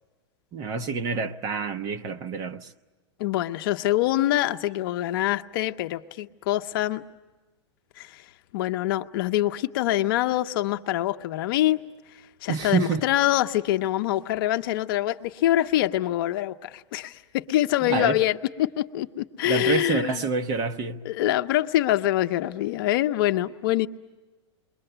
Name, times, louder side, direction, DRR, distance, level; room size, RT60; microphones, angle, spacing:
voice 1, 0.5-2.7 12.5-13.0 17.8-18.2 19.4-21.0, right 5 dB, 25° right, 0.8 m, -27 dB
voice 2, 3.2-7.0 8.0-8.2 8.5-11.8 12.4-20.3 21.0-23.9, left 14 dB, 50° left, 0.8 m, -25 dB
29.0 x 22.5 x 8.0 m
supercardioid pair, 165°, 15 cm